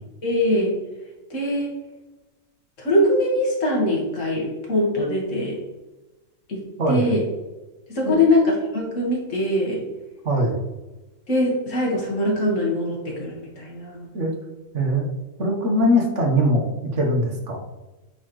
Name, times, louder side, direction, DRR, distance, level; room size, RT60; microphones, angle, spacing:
voice 1, 0.2-0.8 1.3-1.7 2.8-5.6 6.5-6.6 6.9-7.2 7.9-9.8 11.3-14.1, left 1 dB, 65° left, -2 dB, 2.0 m, -22 dB
voice 2, 6.8-7.2 8.0-8.2 10.2-10.6 14.1-14.3 14.7-15.1 15.4-16.6 16.9-17.6, equal, 60° right, 1 dB, 1.5 m, -21 dB
8.4 x 4.2 x 3.1 m, 1.1 s
omnidirectional pair, 1.4 m